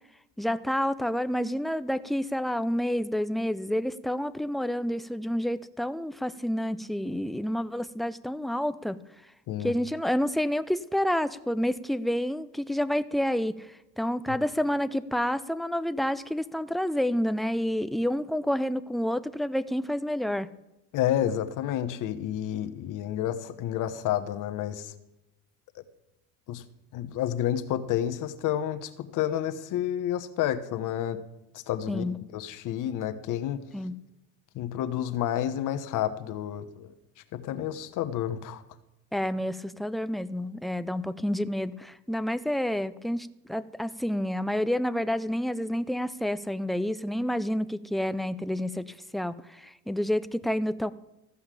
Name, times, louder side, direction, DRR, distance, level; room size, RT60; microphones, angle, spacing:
voice 1, 0.4-9.0 9.6-20.5 31.9-32.2 33.7-34.0 39.1-50.9, equal, ahead, 13 dB, 0.4 m, -29 dB
voice 2, 20.9-24.9 26.5-26.6 26.9-31.2 31.5-32.0 32.3-33.6 34.5-36.9 37.3-38.6, left 11 dB, 60° left, 10 dB, 1.2 m, -30 dB
14.0 x 5.7 x 8.3 m, 0.95 s
supercardioid pair, 105°, 36 cm